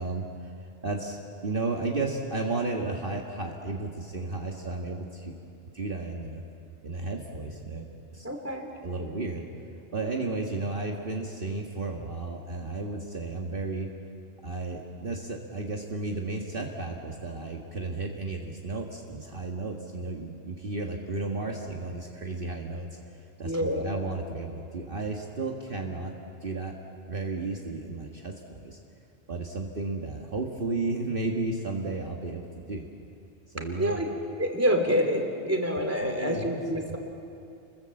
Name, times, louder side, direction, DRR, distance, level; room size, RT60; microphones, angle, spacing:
voice 1, 0.0-5.3 5.7-6.4 6.8-7.8 8.1-8.3 8.7-9.4 9.9-13.9 14.4-26.1 26.4-26.7 27.1-28.8 29.3-32.9 33.5-34.0 36.0-36.6 36.9-37.0, right 3 dB, 50° right, 0 dB, 1.8 m, -33 dB
voice 2, 8.2-8.7 23.4-23.8 33.8-34.0 34.4-37.0, equal, 10° right, 3 dB, 2.9 m, -27 dB
29.5 x 21.5 x 7.7 m, 2.6 s
omnidirectional pair, 1.2 m